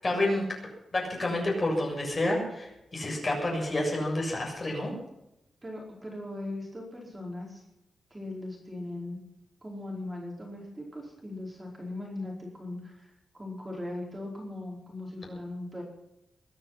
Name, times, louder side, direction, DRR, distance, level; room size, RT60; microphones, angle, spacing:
voice 1, 0.0-0.4 0.9-4.9, left 1 dB, 30° left, -1 dB, 7.2 m, -29 dB
voice 2, 5.6-7.6 8.1-9.2 9.6-15.8, left 2 dB, 15° right, -2 dB, 5.0 m, -39 dB
22.5 x 11.0 x 5.9 m, 0.87 s
wide cardioid pair, 155°, 0 cm